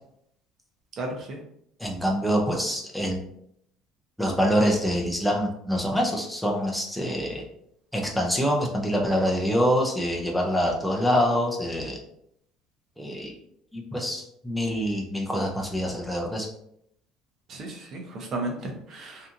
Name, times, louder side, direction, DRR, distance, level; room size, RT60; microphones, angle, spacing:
voice 1, 1.0-1.4 17.5-19.3, right 2 dB, 50° right, 1 dB, 0.7 m, -34 dB
voice 2, 1.8-3.2 4.2-7.4 7.9-12.0 13.0-13.3 13.7-16.5, equal, ahead, -2 dB, 0.5 m, -25 dB
2.8 x 2.4 x 2.5 m, 0.72 s
supercardioid pair, 105°, 0 cm